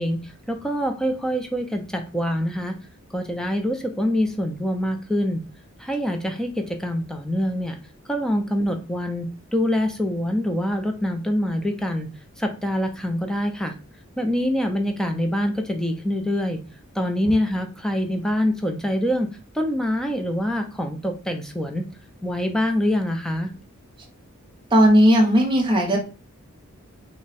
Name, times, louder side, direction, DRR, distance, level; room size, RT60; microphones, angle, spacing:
voice 1, 0.0-2.8 3.1-5.4 5.8-7.8 8.1-12.1 12.4-13.7 14.2-16.6 16.9-19.3 19.5-21.9 22.2-23.5, equal, 5° left, 5 dB, 0.4 m, -25 dB
voice 2, 24.7-26.0, equal, 25° right, 0 dB, 0.8 m, -16 dB
3.4 x 2.1 x 4.0 m, 0.34 s
head